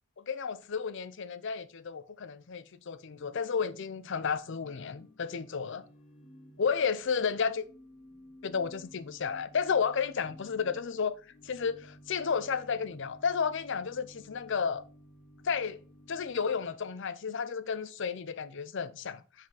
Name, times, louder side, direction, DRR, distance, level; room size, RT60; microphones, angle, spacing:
voice 1, 0.2-5.8 6.6-7.7 8.4-11.2 11.4-14.8 15.4-15.8 16.1-19.5, left 6 dB, 60° left, 0.5 m, -32 dB
Organ / Church bell, 2.9-17.1, equal, 35° left, 2.2 m, -56 dB
5.9 x 5.0 x 4.8 m
head